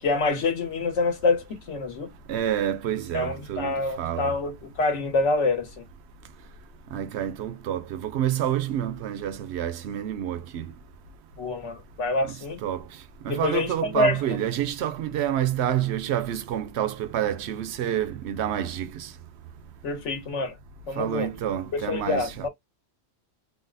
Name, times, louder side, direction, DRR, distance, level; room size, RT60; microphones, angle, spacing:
voice 1, 0.0-2.1 3.1-5.8 11.4-12.6 13.3-14.4 19.8-20.6 20.9-21.3 21.7-22.5, left 3 dB, 75° left, 1.3 m, -26 dB
voice 2, 2.3-4.3 6.9-10.7 12.6-19.1 20.9-22.2, right 11 dB, 70° right, 0.8 m, -28 dB
3.9 x 2.0 x 2.5 m
omnidirectional pair, 1.2 m